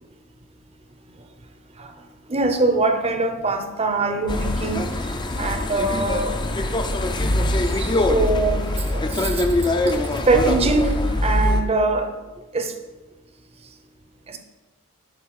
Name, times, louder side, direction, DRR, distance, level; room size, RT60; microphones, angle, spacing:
voice 1, 2.3-4.9 5.4-6.4 7.5-8.7 8.9-9.5 9.8-10.9 11.2-12.1 12.5-12.7 14.3-14.4, right 3 dB, 25° right, 7 dB, 0.6 m, -23 dB
sound 1, 4.3-11.6, left 1 dB, 20° left, 0.5 m, -23 dB
10.5 x 4.0 x 4.7 m, 1.2 s
head